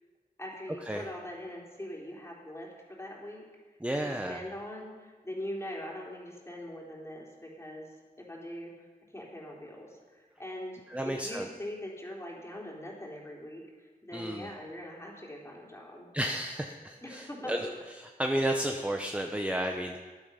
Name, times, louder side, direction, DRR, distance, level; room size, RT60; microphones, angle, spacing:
voice 1, 0.4-3.5 4.0-7.9 8.2-8.7 9.1-16.1 17.0-17.6, left 1 dB, 20° left, -3 dB, 3.5 m, -42 dB
voice 2, 3.8-4.4 10.9-11.5 14.1-14.5 16.1-17.6 18.0-20.0, right 1 dB, 10° right, 3 dB, 0.8 m, -32 dB
14.0 x 11.0 x 5.7 m, 1.4 s
wide cardioid pair, 80°, 16 cm